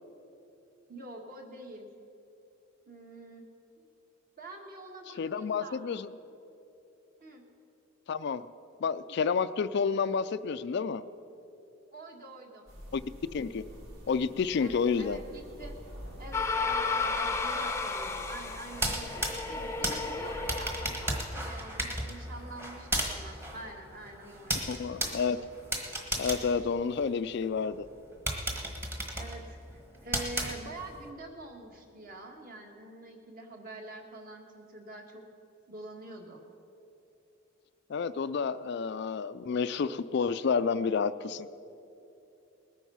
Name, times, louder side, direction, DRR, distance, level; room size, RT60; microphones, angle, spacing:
voice 1, 0.9-1.9 2.9-3.5 3.8-3.9 4.4-5.8 7.2-7.4 11.9-12.7 14.6-15.8 16.2-24.7 29.1-35.2 35.7-36.4, right 2 dB, 40° right, 2 dB, 1.7 m, -46 dB
voice 2, 5.2-6.1 8.1-8.4 8.8-11.0 12.9-13.0 13.3-13.6 14.1-15.2 24.7-25.4 26.2-27.8 37.9-41.5, left 5 dB, 55° left, 13 dB, 0.3 m, -30 dB
sound 1, 12.7-20.6, equal, 70° right, 3.6 m, -47 dB
sound 2, 16.3-21.4, left 4 dB, 15° left, 0.6 m, -33 dB
sound 3, 18.7-27.4 27.8-27.9 28.3-31.0, right 1 dB, 10° right, 1.3 m, -35 dB
20.0 x 9.2 x 5.6 m, 2.9 s
head